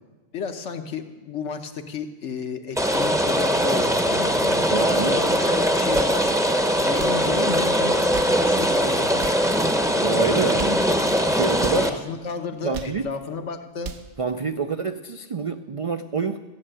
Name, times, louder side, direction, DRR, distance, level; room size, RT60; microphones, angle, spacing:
voice 1, 0.3-4.7 4.9-6.3 6.7-9.2 10.4-10.7 11.8-13.9, left 5 dB, 75° left, 7 dB, 1.3 m, -32 dB
Rain, 2.8-11.9, equal, 5° right, 0.7 m, -21 dB
voice 2, 4.7-5.2 10.0-10.9 11.3-11.9 12.6-13.1 14.2-16.4, right 4 dB, 60° right, 8 dB, 0.3 m, -26 dB
sound 1, 5.7-6.2 6.9-7.2 7.9-8.4 9.1-9.5 10.4-10.9 11.6-11.9 12.5-13.0 13.6-14.1, right 5 dB, 75° right, 1.2 m, -37 dB
14.0 x 6.7 x 8.8 m, 1.3 s
omnidirectional pair, 1.2 m